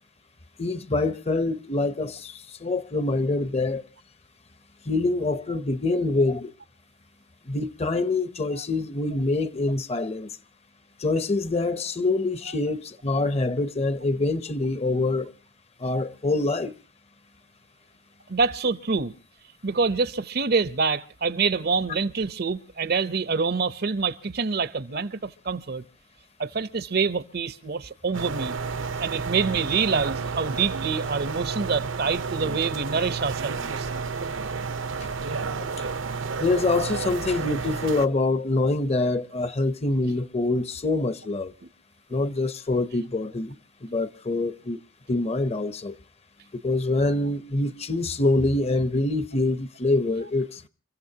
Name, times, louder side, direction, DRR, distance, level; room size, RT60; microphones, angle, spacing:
voice 1, 0.6-3.8 4.9-6.5 7.5-10.4 11.0-15.3 15.8-16.7 36.4-41.5 42.1-43.5 43.8-44.8 45.1-46.0 46.5-50.7, left 2 dB, 30° left, 0.7 m, -25 dB
voice 2, 18.3-19.1 19.6-25.8 26.4-28.6 29.0-33.9, right 5 dB, 50° right, 0.7 m, -26 dB
sound 1, 28.1-38.1, right 4 dB, 80° right, 0.8 m, -31 dB
30.0 x 15.0 x 2.8 m
head